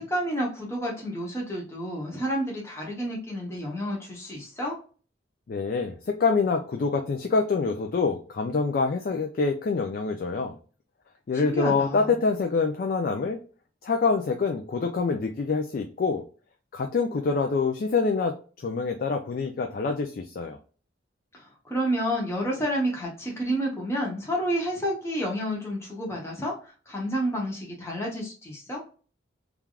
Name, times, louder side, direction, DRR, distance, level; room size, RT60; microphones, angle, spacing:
voice 1, 0.0-4.7 11.3-12.1 21.3-28.8, equal, 15° left, -2 dB, 0.7 m, -30 dB
voice 2, 5.5-10.6 11.3-13.4 13.8-16.2 16.7-18.4 18.6-20.6, left 4 dB, 50° left, 5 dB, 0.3 m, -26 dB
3.3 x 2.3 x 2.2 m, 0.37 s
head